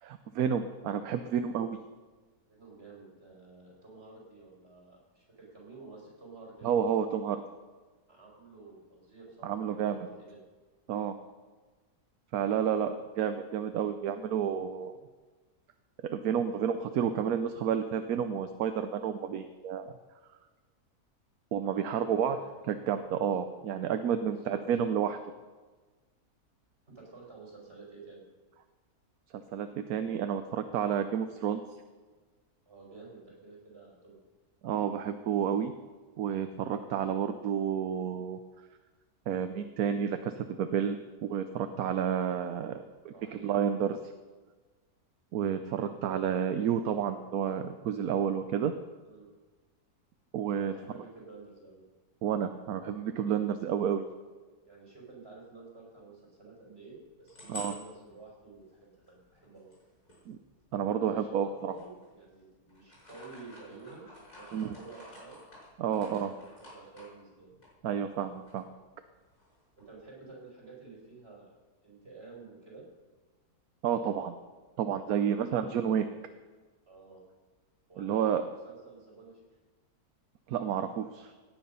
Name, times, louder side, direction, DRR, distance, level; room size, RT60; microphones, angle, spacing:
voice 1, 0.0-1.8 6.6-7.4 9.4-10.0 10.9-11.1 12.3-15.0 16.0-19.9 21.5-22.4 22.7-25.2 29.5-31.6 34.6-35.7 36.2-38.4 39.3-41.0 41.2-43.1 43.4-44.0 45.3-48.7 50.3-50.7 52.2-54.0 57.5-57.7 60.3-60.4 60.7-61.8 64.5-64.8 65.8-66.3 67.8-68.7 73.8-74.4 74.8-76.1 78.0-78.4 80.5-81.3, right 8 dB, 70° right, 8 dB, 1.2 m, -30 dB
voice 2, 2.5-6.8 8.1-10.4 12.4-13.0 21.7-22.7 24.2-25.0 26.9-28.2 32.7-34.2 43.1-43.5 49.0-49.3 50.6-51.8 54.7-59.7 60.9-65.4 65.9-67.5 69.8-71.5 71.8-72.9 75.2-75.5 76.9-77.2 77.9-79.4, right 3 dB, 40° right, -3 dB, 5.3 m, -51 dB
sound 1, 57.0-61.0 61.6-62.4 62.7-68.2 68.5-68.6 68.9-70.1, left 2 dB, 60° left, 6.5 m, -50 dB
17.5 x 9.4 x 5.5 m, 1.3 s
omnidirectional pair, 1.6 m